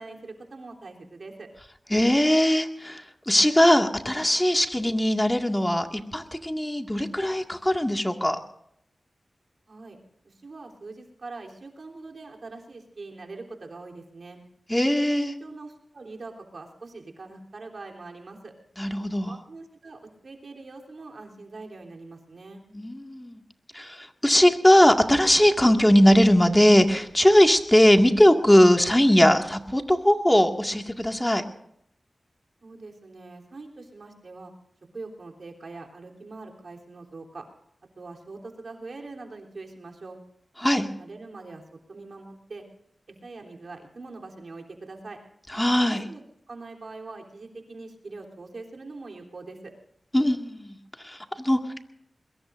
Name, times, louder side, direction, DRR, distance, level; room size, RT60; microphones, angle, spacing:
voice 1, 0.0-1.5 9.7-10.0 10.2-14.4 15.2-18.5 19.2-22.6 32.6-34.5 34.9-37.5 38.0-40.2 41.0-41.6 41.9-42.6 43.1-45.2 45.9-46.2 46.5-49.7, right 3 dB, 70° right, 2 dB, 3.5 m, -42 dB
voice 2, 1.9-8.4 14.7-15.3 18.8-19.3 22.7-23.4 23.7-31.4 40.6-40.9 45.5-46.0 50.1-50.8 51.0-51.8, equal, 10° left, 4 dB, 2.0 m, -20 dB
22.5 x 22.0 x 2.6 m, 0.72 s
cardioid pair, 55°, 0 cm